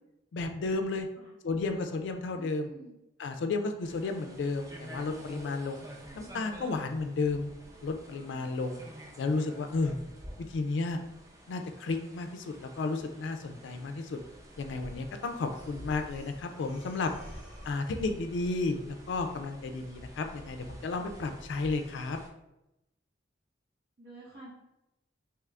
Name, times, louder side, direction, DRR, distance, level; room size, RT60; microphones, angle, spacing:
voice 1, 0.3-1.1 1.4-2.7 3.2-5.9 6.1-7.5 7.8-8.8 9.2-10.0 10.5-11.0 11.5-14.2 14.6-17.1 17.6-22.2, left 3 dB, 65° left, 6 dB, 0.3 m, -32 dB
voice 2, 2.3-3.0 24.0-24.5, right 1 dB, 65° right, -7 dB, 0.7 m, -49 dB
sound 1, 3.8-22.3, equal, 15° right, 0.3 m, -49 dB
Breathing, 15.5-18.1, equal, 35° right, 0.9 m, -54 dB
2.9 x 2.4 x 3.3 m, 0.90 s
head